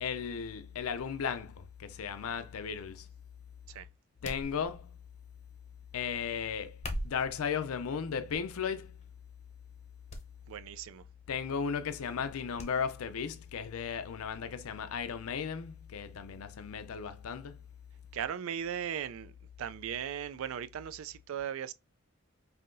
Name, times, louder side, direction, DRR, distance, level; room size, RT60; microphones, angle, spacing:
voice 1, 0.0-3.1 4.2-5.0 5.9-6.8 7.0-9.0 11.3-17.6, left 6 dB, 75° left, 0.4 m, -35 dB
sound 1, 4.2-5.0 6.7-7.4 8.2-8.5 9.0-9.1 10.1-10.3 10.6-10.7 12.6-12.7 13.1-13.2, equal, 30° left, 0.7 m, -40 dB
voice 2, 10.5-11.1 18.1-19.3 19.6-21.7, right 8 dB, 65° right, 0.3 m, -37 dB
5.5 x 2.7 x 2.5 m
head